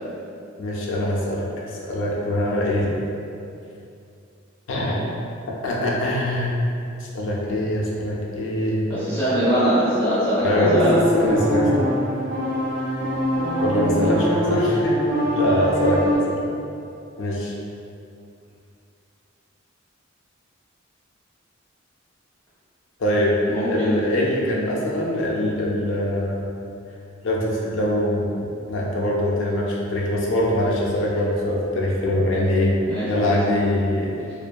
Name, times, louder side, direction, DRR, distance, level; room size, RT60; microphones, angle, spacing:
voice 1, 0.6-2.9 4.7-5.1 5.6-6.6 7.0-8.9 10.4-11.9 13.6-15.0 15.3-16.4 17.2-17.5 23.0-26.6 27.2-32.7 33.1-34.2, left 1 dB, 65° left, -3 dB, 0.4 m, -23 dB
voice 2, 8.9-10.9 23.5-24.0 32.9-33.4, equal, 10° left, -13 dB, 0.8 m, -22 dB
sound 1, 10.6-16.2, equal, 70° right, 0.9 m, -23 dB
2.7 x 2.3 x 2.2 m, 2.6 s
head